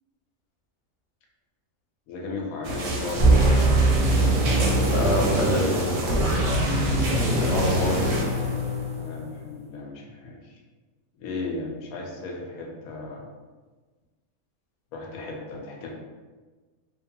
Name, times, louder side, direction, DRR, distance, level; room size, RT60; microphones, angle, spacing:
voice 1, 2.1-3.3 9.0-10.6 11.1-13.2 14.9-15.9, left 3 dB, 80° left, -1 dB, 1.0 m, -35 dB
sound 1, 2.6-8.3, right 1 dB, 75° right, 1.0 m, -31 dB
sound 2, 3.2-9.4, right 1 dB, 60° right, 0.5 m, -22 dB
voice 2, 4.6-6.4 7.1-8.1, left 1 dB, 60° left, -2 dB, 0.6 m, -27 dB
2.6 x 2.2 x 2.6 m, 1.3 s
omnidirectional pair, 1.5 m